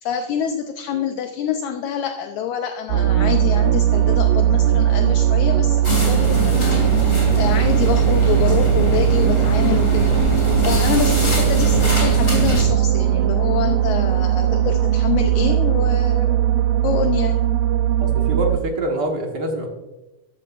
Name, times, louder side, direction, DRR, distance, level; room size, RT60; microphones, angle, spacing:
voice 1, 0.0-16.4 16.8-17.3, left 9 dB, 75° left, 6 dB, 1.8 m, -26 dB
sound 1, 2.9-18.6, right 11 dB, 80° right, 2.2 m, -18 dB
sound 2, 5.8-12.6, left 2 dB, 20° left, 2.4 m, -23 dB
voice 2, 18.0-19.7, right 1 dB, 50° right, 1 dB, 1.2 m, -25 dB
13.5 x 12.5 x 2.5 m, 1.0 s
omnidirectional pair, 4.0 m